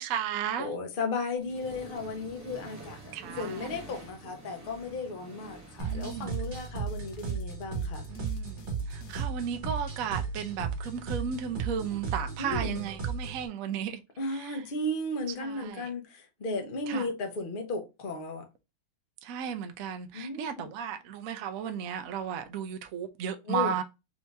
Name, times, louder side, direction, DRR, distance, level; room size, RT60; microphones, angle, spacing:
voice 1, 0.0-0.7 3.1-3.7 5.8-6.4 8.1-14.0 14.3-14.6 15.4-15.9 16.9-17.1 19.2-23.8, right 8 dB, 80° right, 0.7 m, -34 dB
voice 2, 0.6-8.1 12.4-12.9 14.2-18.5 20.1-20.6 23.5-23.8, left 2 dB, 45° left, 0.6 m, -35 dB
Accelerating revving vroom, 1.4-6.6, right 1 dB, 25° right, 0.3 m, -47 dB
sound 1, 5.8-10.1, left 2 dB, 70° left, 1.0 m, -49 dB
sound 2, 5.8-13.5, right 5 dB, 50° right, 2.3 m, -35 dB
4.4 x 2.7 x 3.3 m
omnidirectional pair, 2.2 m